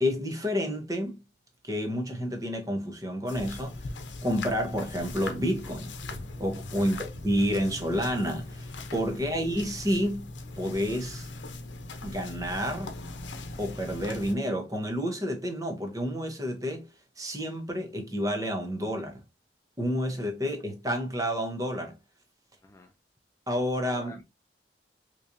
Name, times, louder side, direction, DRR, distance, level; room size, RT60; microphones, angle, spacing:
voice 1, 0.0-1.2 1.6-3.9 4.2-5.9 6.4-10.3 10.6-11.3 12.0-12.9 13.6-16.9 17.2-19.2 19.8-22.0 23.5-24.2, equal, 20° right, 0.8 m, -30 dB
sound 1, 3.3-14.3, left 2 dB, 85° left, 0.7 m, -40 dB
sound 2, 6.0-11.6, equal, 85° right, 0.8 m, -51 dB
voice 2, 6.7-7.1 9.1-9.4 20.0-20.5 22.6-23.0 23.8-24.2, left 1 dB, 15° left, 0.4 m, -51 dB
3.9 x 3.0 x 2.6 m
head